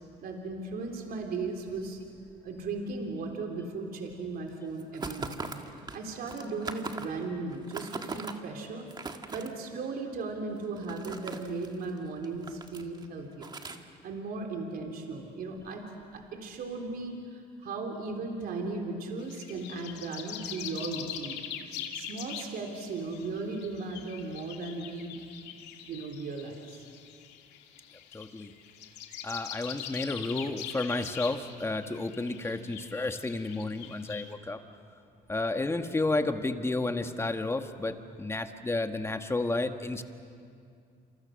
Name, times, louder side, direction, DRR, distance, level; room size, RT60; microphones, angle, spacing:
voice 1, 0.2-2.0 2.4-8.9 9.3-13.5 14.0-15.8 16.1-21.4 21.9-25.2 25.8-26.8, right 3 dB, 60° right, 2 dB, 3.6 m, -37 dB
sound 1, 4.8-7.2 7.5-8.3 8.8-9.5 10.5-11.9 12.2-13.1 13.4-13.8, right 4 dB, 25° right, 1.8 m, -39 dB
sound 2, 19.2-34.3, left 9 dB, 85° left, 2.4 m, -43 dB
voice 2, 28.1-28.5 29.2-34.6 35.3-40.0, left 2 dB, 15° left, 7 dB, 1.5 m, -31 dB
28.5 x 28.0 x 6.5 m, 2.3 s
cardioid pair, 110°, 17 cm